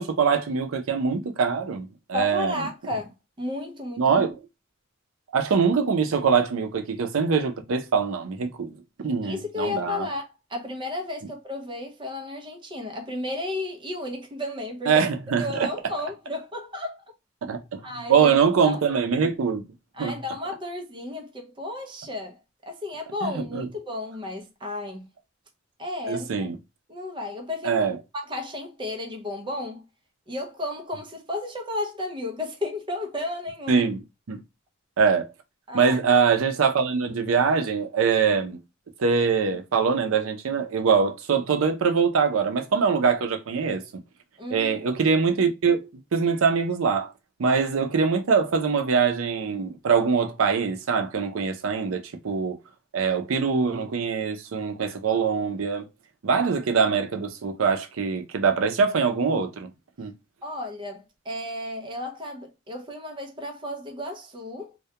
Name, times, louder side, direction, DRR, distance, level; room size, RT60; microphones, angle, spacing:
voice 1, 0.0-2.6 4.0-4.4 5.3-8.7 9.0-10.1 14.9-15.7 17.4-17.8 18.1-19.6 20.0-20.1 23.2-23.7 26.1-26.6 27.6-28.0 33.7-34.0 34.3-34.4 35.0-35.3 35.7-38.6 39.0-43.8 44.5-45.8 46.1-47.1 47.4-52.6 52.9-55.9 56.2-59.7 60.0-60.1, right 5 dB, 85° right, 0.5 m, -23 dB
voice 2, 2.1-4.2 9.2-15.1 15.4-17.0 17.8-18.3 18.6-19.0 19.9-22.4 22.6-25.1 25.8-26.5 26.9-27.9 28.2-29.8 30.3-33.9 35.7-36.0 44.4-44.8 56.3-56.5 60.4-64.7, left 2 dB, 25° right, 0.5 m, -33 dB
2.2 x 2.1 x 2.7 m
head